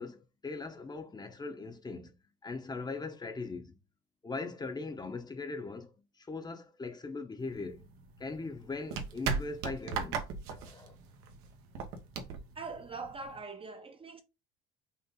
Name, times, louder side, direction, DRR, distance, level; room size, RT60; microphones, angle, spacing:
voice 1, 0.0-2.1 2.4-3.8 4.2-5.9 6.2-7.9 8.2-10.2 10.5-10.9, left 3 dB, 20° left, 0.7 m, -40 dB
sound 1, 7.4-13.4, right 5 dB, 85° right, 1.1 m, -38 dB
voice 2, 12.6-14.2, right 4 dB, 25° right, 0.6 m, -42 dB
5.5 x 2.6 x 3.7 m
cardioid pair, 115°, 21 cm